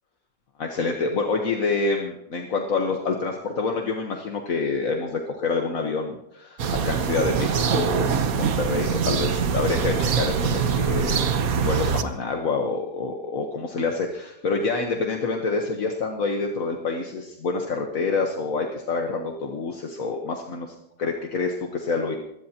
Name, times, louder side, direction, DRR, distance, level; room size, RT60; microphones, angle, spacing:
voice 1, 0.6-22.2, left 4 dB, 70° left, 2 dB, 1.6 m, -27 dB
sound 1, 6.6-12.0, right 6 dB, 80° right, 1.4 m, -24 dB
23.5 x 17.0 x 2.9 m, 0.86 s
omnidirectional pair, 1.5 m